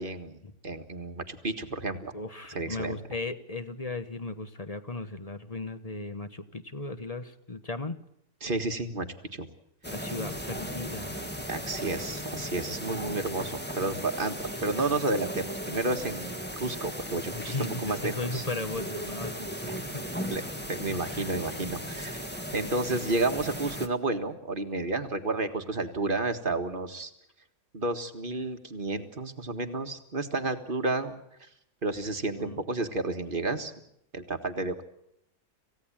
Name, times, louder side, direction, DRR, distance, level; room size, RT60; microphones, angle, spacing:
voice 1, 0.0-2.1 2.5-3.0 8.4-9.1 9.3-9.5 11.5-18.4 19.7-19.8 20.3-20.4 20.7-22.2 22.5-27.1 27.7-31.2 31.8-33.7 34.1-34.8, right 2 dB, 35° right, 6 dB, 1.8 m, -31 dB
voice 2, 2.1-8.0 9.9-11.1 17.3-20.5 21.0-21.3 23.3-23.5 32.4-32.6, left 2 dB, 25° left, 10 dB, 1.2 m, -37 dB
sound 1, 9.8-23.9, equal, 5° left, 1.6 m, -37 dB
27.5 x 16.5 x 8.8 m, 0.78 s
omnidirectional pair, 1.7 m